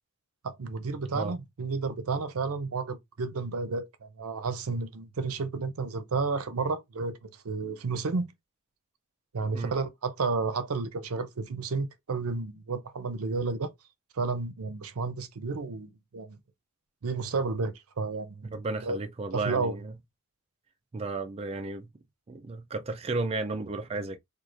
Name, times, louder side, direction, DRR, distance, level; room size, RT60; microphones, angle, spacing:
voice 1, 0.4-8.3 9.3-13.7 14.2-16.4 17.0-19.0 19.3-19.8, right 4 dB, 75° right, 0.6 m, -32 dB
voice 2, 18.5-19.9 20.9-21.9 22.3-24.2, right 3 dB, 25° right, 0.3 m, -33 dB
4.6 x 2.4 x 2.4 m
head